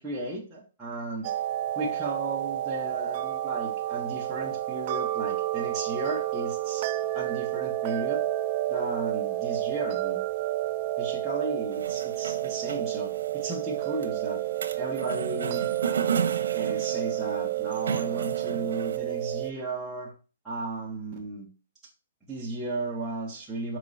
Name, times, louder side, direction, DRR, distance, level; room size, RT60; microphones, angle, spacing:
voice 1, 0.0-1.3 1.7-6.9 7.1-8.2 8.7-10.2 11.0-14.4 14.8-15.7 16.5-20.1 20.4-21.5 22.3-23.8, right 2 dB, ahead, -10 dB, 1.3 m, -35 dB
sound 1, 1.2-19.5, right 14 dB, 30° right, 0.3 m, -30 dB
sound 2, 11.7-19.0, right 6 dB, 85° right, 1.0 m, -34 dB
6.1 x 4.8 x 4.1 m, 0.34 s
hypercardioid pair, 175°, 0 cm